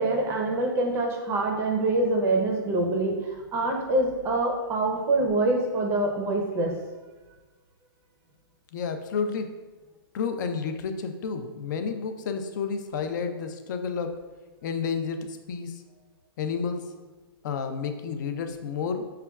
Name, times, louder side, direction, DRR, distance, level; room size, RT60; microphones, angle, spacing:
voice 1, 0.0-6.7, right 2 dB, 20° right, 1 dB, 0.5 m, -25 dB
voice 2, 8.7-9.5 10.1-14.2 14.6-15.7 16.4-16.9 17.4-19.1, left 5 dB, 50° left, 7 dB, 0.4 m, -30 dB
5.7 x 2.2 x 2.3 m, 1.2 s
hypercardioid pair, 150°, 13 cm